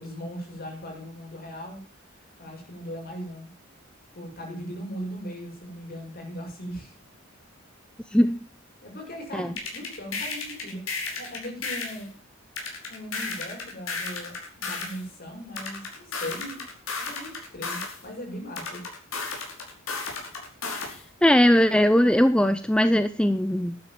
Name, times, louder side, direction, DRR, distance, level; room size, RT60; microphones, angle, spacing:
voice 1, 0.0-1.8 2.2-3.5 4.2-6.9 8.8-10.9 11.2-12.1 12.9-16.6 17.0-18.8, equal, 50° left, 1 dB, 6.8 m, -38 dB
sound 1, 9.6-12.0 12.6-15.0 15.6-18.0 18.5-21.0, left 4 dB, 80° left, 5.1 m, -33 dB
voice 2, 21.2-23.8, equal, 5° left, 11 dB, 0.5 m, -20 dB
11.5 x 9.7 x 7.5 m, 0.42 s
head